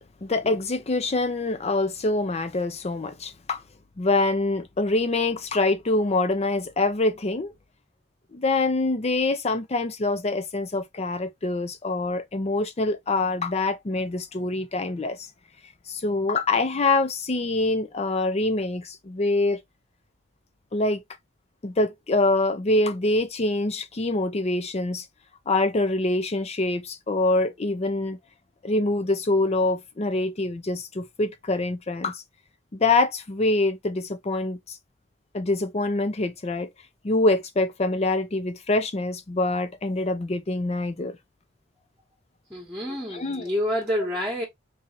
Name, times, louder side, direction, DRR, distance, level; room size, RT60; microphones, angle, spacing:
voice 1, 0.2-3.6 4.0-7.5 8.3-15.2 15.9-19.6 20.7-21.0 21.6-25.0 25.5-28.2 28.6-32.2 32.7-34.8 35.3-36.7 37.0-41.2 43.1-43.5, left 2 dB, 35° left, 0.5 m, -25 dB
voice 2, 42.5-44.4, equal, 10° right, 1.3 m, -28 dB
4.0 x 2.7 x 2.7 m
head